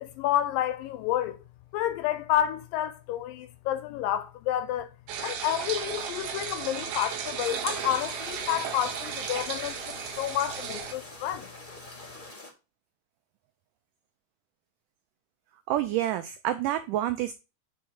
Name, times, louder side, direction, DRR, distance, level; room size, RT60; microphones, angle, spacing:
voice 1, 0.0-1.4 1.7-4.9 5.2-11.5, left 12 dB, 80° left, 2.1 m, -30 dB
sound 1, 5.1-10.9, right 7 dB, 75° right, 1.7 m, -35 dB
sound 2, 7.4-12.5, left 2 dB, 30° left, 0.9 m, -45 dB
voice 2, 15.7-17.3, right 13 dB, 90° right, 1.8 m, -28 dB
5.9 x 4.2 x 6.2 m
omnidirectional pair, 4.3 m